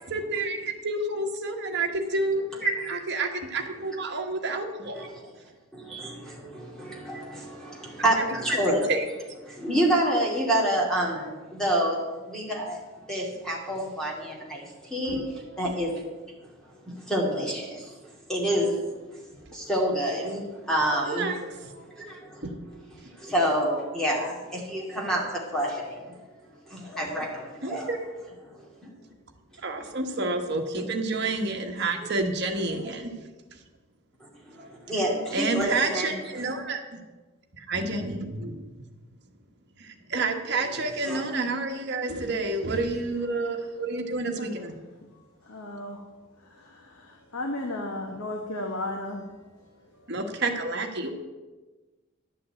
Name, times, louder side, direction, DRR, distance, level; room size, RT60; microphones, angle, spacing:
voice 1, 0.1-2.4 2.9-5.1 8.9-9.0 15.0-15.2 21.1-21.4 22.4-22.6 27.6-28.0 29.6-33.1 35.3-37.0 37.6-38.6 39.8-44.8 50.1-51.1, right 3 dB, 50° right, 3 dB, 1.4 m, -29 dB
voice 2, 2.6-2.9 5.0-5.1 5.7-8.8 9.5-12.0 12.3-12.8 13.1-14.6 14.9-16.1 16.8-17.9 18.3-19.2 19.5-21.3 21.9-22.8 23.2-26.1 26.7-27.9 28.6-28.9 32.7-32.8 34.5-36.5 41.0-41.3, right 1 dB, 5° left, -3 dB, 2.4 m, -28 dB
voice 3, 45.4-46.0 46.4-49.3 50.0-50.1, left 1 dB, 80° left, 2 dB, 1.3 m, -35 dB
11.0 x 5.8 x 8.7 m, 1.2 s
head